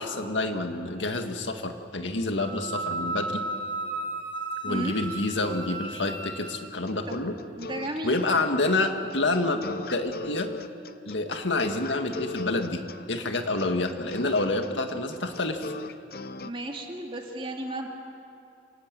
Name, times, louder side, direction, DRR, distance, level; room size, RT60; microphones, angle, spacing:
voice 1, 0.0-3.4 4.6-7.3 8.0-10.5 11.1-12.8 13.1-15.7, left 2 dB, 75° left, 5 dB, 1.9 m, -28 dB
Wind instrument woodwind instrument, 2.4-6.7, right 3 dB, 75° right, 3.2 m, -34 dB
voice 2, 4.7-5.0 7.1-7.2 7.6-8.2 16.4-17.9, right 1 dB, 25° right, 2 dB, 2.4 m, -34 dB
sound 1, 6.9-16.5, left 3 dB, 50° left, 0.7 m, -39 dB
27.0 x 18.0 x 9.1 m, 2.6 s
head